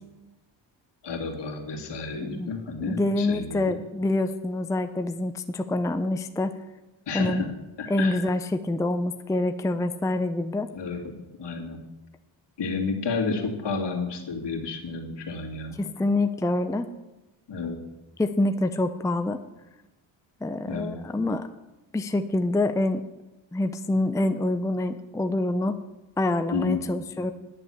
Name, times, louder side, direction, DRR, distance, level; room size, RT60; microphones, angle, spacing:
voice 1, 1.0-3.8 7.1-7.5 7.8-8.2 10.7-11.0 11.4-11.8 12.6-15.8 17.5-17.8 20.6-20.9 26.5-26.8, left 4 dB, 60° left, 0 dB, 2.5 m, -31 dB
voice 2, 2.2-2.5 2.8-6.6 7.1-7.4 7.9-10.7 15.8-16.9 18.2-19.4 20.4-21.5 21.9-23.0 23.5-25.8 26.2-27.3, left 2 dB, 5° left, 9 dB, 0.5 m, -26 dB
10.5 x 6.8 x 7.2 m, 1.1 s
cardioid pair, 75°, 47 cm